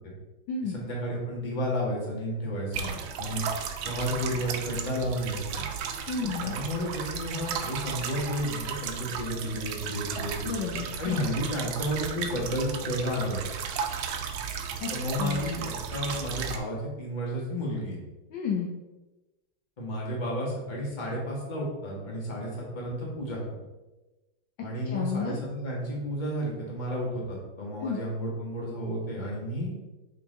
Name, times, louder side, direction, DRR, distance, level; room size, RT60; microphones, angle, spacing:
voice 1, 0.6-3.4 3.8-5.7 6.4-10.5 11.0-13.4 14.9-18.0 19.8-23.5 24.6-29.7, equal, 25° left, -3 dB, 1.5 m, -32 dB
sound 1, 2.7-16.6, right 7 dB, 80° right, 1.4 m, -35 dB
voice 2, 6.1-6.6 10.4-11.3 14.8-14.9 15.2-15.4 18.3-18.7 24.9-25.3 27.8-28.0, left 5 dB, 70° left, -1 dB, 1.3 m, -31 dB
5.6 x 4.8 x 3.8 m, 1.1 s
omnidirectional pair, 2.3 m